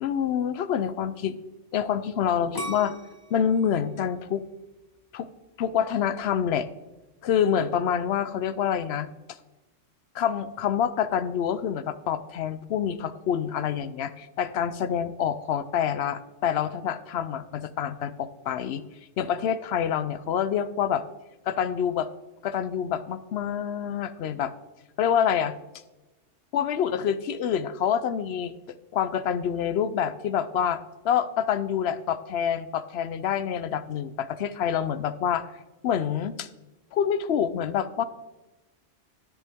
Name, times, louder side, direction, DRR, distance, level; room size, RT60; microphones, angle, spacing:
voice 1, 0.0-1.3 1.7-3.0 3.3-4.4 5.1-5.3 5.6-6.7 7.2-9.1 10.1-18.8 19.2-21.0 21.5-22.1 22.4-24.5 25.0-25.5 26.5-28.5 28.9-35.5 35.8-36.5 36.9-38.0, left 8 dB, 65° left, 14 dB, 0.8 m, -27 dB
sound 1, 2.5-5.5 6.0-6.5, right 1 dB, 20° left, 1.3 m, -40 dB
10.5 x 10.5 x 3.5 m, 1.1 s
omnidirectional pair, 1.3 m